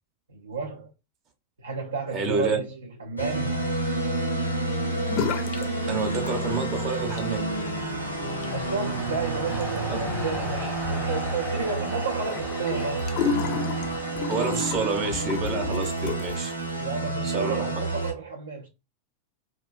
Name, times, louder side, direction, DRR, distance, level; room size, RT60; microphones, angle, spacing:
voice 1, 0.3-0.9 1.6-3.7 8.5-13.1 16.8-18.7, right 5 dB, 70° right, 0.4 m, -32 dB
voice 2, 2.1-2.6 5.9-7.5 9.9-10.0 14.3-16.5 17.2-17.7, right 4 dB, 35° right, 0.7 m, -28 dB
sound 1, 3.2-18.1, right 2 dB, 90° left, 0.6 m, -29 dB
sound 2, 5.1-5.7 6.0-6.6 7.0-16.5, left 6 dB, 45° left, 0.4 m, -34 dB
sound 3, 5.3-17.0, equal, 5° right, 0.6 m, -41 dB
2.4 x 2.1 x 2.5 m
figure-of-eight pair, 90°, 0 cm